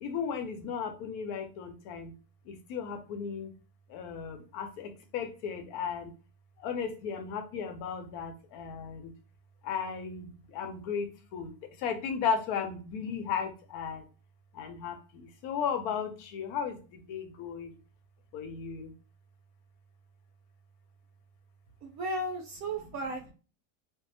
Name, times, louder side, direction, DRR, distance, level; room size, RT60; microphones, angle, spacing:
voice 1, 0.0-2.1 2.5-3.5 3.9-6.1 6.6-9.1 9.6-11.5 11.8-14.0 14.5-16.8 17.1-17.8 18.3-18.9, left 6 dB, 75° left, 6 dB, 1.0 m, -35 dB
voice 2, 21.8-23.3, right 1 dB, 70° right, 1 dB, 1.0 m, -35 dB
2.6 x 2.3 x 2.6 m, 0.35 s
omnidirectional pair, 1.7 m